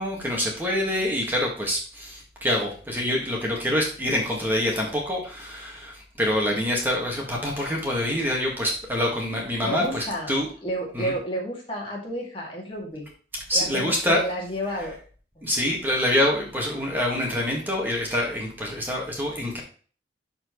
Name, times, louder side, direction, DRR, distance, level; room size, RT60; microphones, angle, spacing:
voice 1, 0.0-10.5 10.9-11.1 13.5-14.2 15.4-19.6, left 1 dB, 10° right, -2 dB, 1.8 m, -26 dB
voice 2, 9.6-10.3 10.6-13.1 13.5-15.0 15.4-15.5, equal, 30° left, -2 dB, 2.4 m, -31 dB
12.5 x 4.4 x 3.2 m, 0.40 s
head